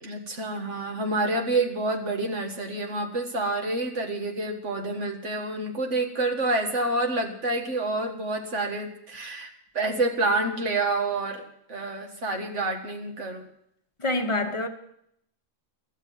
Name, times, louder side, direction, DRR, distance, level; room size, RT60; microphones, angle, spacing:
voice 1, 0.0-11.4 11.7-13.4, right 2 dB, 60° right, 2.1 m, -28 dB
voice 2, 14.0-14.7, left 2 dB, 25° left, 1.1 m, -26 dB
14.5 x 7.1 x 9.2 m
omnidirectional pair, 1.4 m